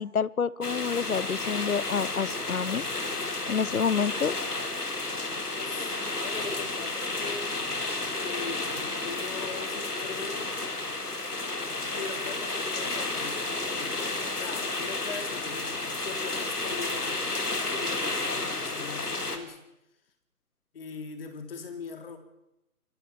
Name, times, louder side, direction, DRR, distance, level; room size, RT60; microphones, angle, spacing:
voice 1, 0.0-2.9 3.5-4.4, left 6 dB, 65° left, 22 dB, 1.0 m, -28 dB
sound 1, 0.6-19.4, left 2 dB, 85° left, 3.9 m, -32 dB
voice 2, 5.5-7.5 8.2-10.5 11.9-15.7 16.0-19.6 20.7-22.2, left 5 dB, 40° left, 7 dB, 3.7 m, -41 dB
25.0 x 21.0 x 7.1 m, 0.89 s
figure-of-eight pair, 155°, 45 cm